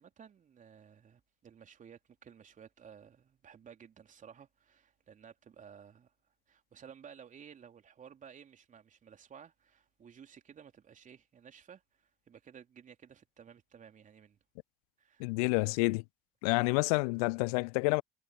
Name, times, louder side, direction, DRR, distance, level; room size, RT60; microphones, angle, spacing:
voice 1, 0.0-6.1 6.5-14.4 15.0-15.2, right 7 dB, 40° right, 3.6 m, -55 dB
voice 2, 15.2-16.0 16.4-18.0, left 28 dB, 70° left, 0.6 m, -29 dB
figure-of-eight pair, 55°, 20 cm